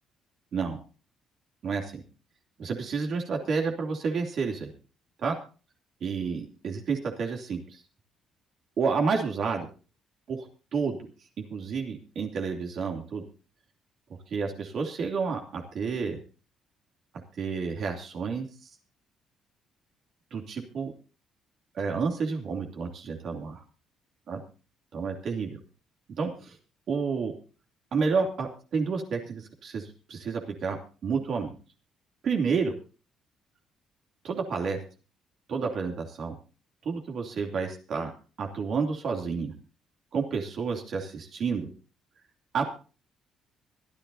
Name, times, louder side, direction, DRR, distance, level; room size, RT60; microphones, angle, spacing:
voice 1, 1.6-2.0 2.6-4.7 5.2-5.4 6.0-7.8 8.8-9.7 10.3-10.5 10.7-11.0 11.4-13.2 14.3-16.2 17.4-18.5 20.3-20.9 21.7-23.6 24.3-24.4 24.9-25.6 26.2-26.6 26.9-27.3 27.9-30.8 31.0-31.5 32.2-32.7 34.2-34.8 35.5-36.3 36.8-38.1 38.4-39.5 40.1-41.7 42.5-42.7, right 5 dB, 55° right, 1 dB, 2.9 m, -30 dB
25.0 x 10.5 x 2.8 m, 0.36 s
cardioid pair, 110°, 0 cm